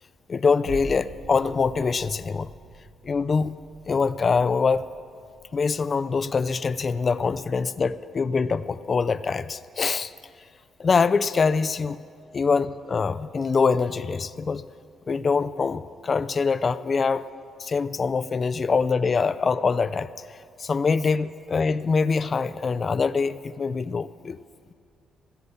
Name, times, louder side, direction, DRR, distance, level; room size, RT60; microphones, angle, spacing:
voice 1, 0.3-2.5 3.0-3.6 3.9-4.9 5.5-10.1 10.8-12.0 12.3-14.6 15.1-17.3 17.6-24.4, left 5 dB, 40° left, 16 dB, 0.4 m, -24 dB
sound 1, 0.6-9.2 9.7-9.8, right 2 dB, 70° right, 2.1 m, -45 dB
16.5 x 6.9 x 6.8 m, 2.3 s
cardioid pair, 90°, 0 cm